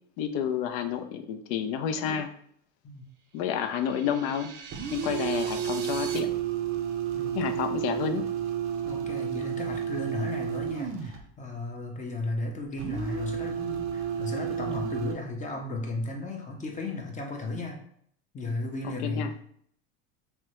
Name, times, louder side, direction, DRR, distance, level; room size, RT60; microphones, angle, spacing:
voice 1, 0.2-2.3 3.3-4.5 4.9-6.3 7.3-8.3 18.8-19.3, left 8 dB, 65° left, 8 dB, 0.5 m, -30 dB
sound 1, 3.4-6.2, right 6 dB, 75° right, 0.6 m, -43 dB
sound 2, 4.7-11.2 12.8-15.1, right 9 dB, 35° right, 0.5 m, -31 dB
voice 2, 7.1-7.6 8.8-17.8 18.3-19.3, left 2 dB, 20° left, 2 dB, 0.6 m, -35 dB
3.4 x 2.1 x 2.9 m, 0.66 s
supercardioid pair, 105°, 36 cm